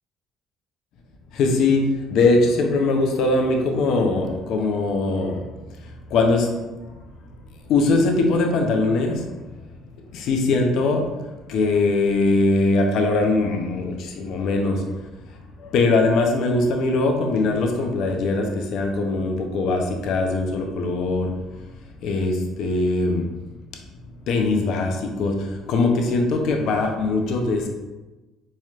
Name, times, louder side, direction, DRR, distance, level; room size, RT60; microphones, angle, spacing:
voice 1, 1.3-5.4 5.8-6.6 7.7-9.4 10.1-15.1 15.6-21.6 22.0-23.3 24.2-27.7, left 3 dB, 65° left, 2 dB, 0.6 m, -21 dB
4.1 x 3.1 x 2.4 m, 1.1 s
hypercardioid pair, 60°, 0 cm